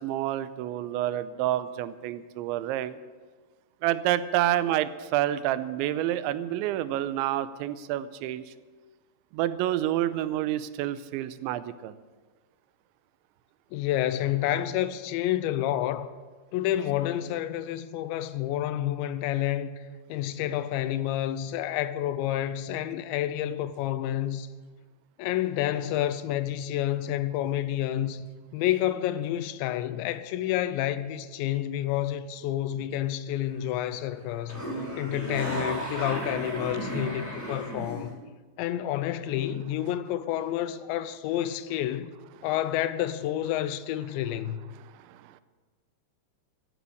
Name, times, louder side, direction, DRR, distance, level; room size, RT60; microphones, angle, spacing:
voice 1, 0.0-3.0 3.8-8.4 9.3-12.0 45.0-45.4, right 13 dB, 90° right, 3.0 m, -28 dB
voice 2, 13.7-16.1 16.5-19.8 20.1-24.5 25.2-28.3 28.5-34.6 35.0-38.2 38.6-42.1 42.4-44.8, left 12 dB, 85° left, 2.9 m, -29 dB
sound 1, 33.5-33.9 34.2-38.1, equal, 5° left, 3.1 m, -34 dB
16.0 x 11.0 x 6.5 m
omnidirectional pair, 5.2 m